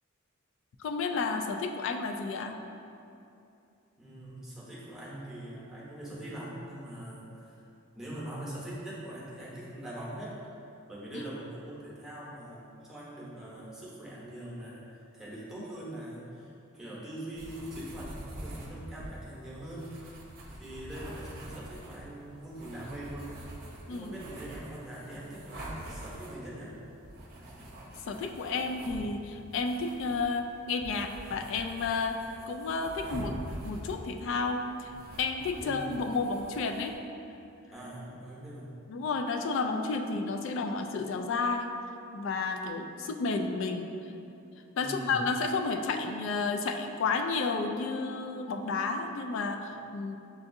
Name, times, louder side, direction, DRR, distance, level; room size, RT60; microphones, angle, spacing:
voice 1, 0.8-2.6 11.1-11.3 23.9-24.2 28.1-33.3 33.6-34.9 35.2-36.9 38.9-41.7 42.1-43.9 44.8-50.2, left 4 dB, 60° left, 4 dB, 0.3 m, -31 dB
voice 2, 4.0-7.6 7.9-10.3 10.9-16.5 16.7-20.2 20.5-23.4 23.9-26.7 35.6-35.8 37.7-38.8 44.8-45.2, right 1 dB, ahead, -8 dB, 0.8 m, -42 dB
sound 1, 17.4-36.9, right 1 dB, 45° right, 0.6 m, -45 dB
6.6 x 2.6 x 2.6 m, 2.7 s
head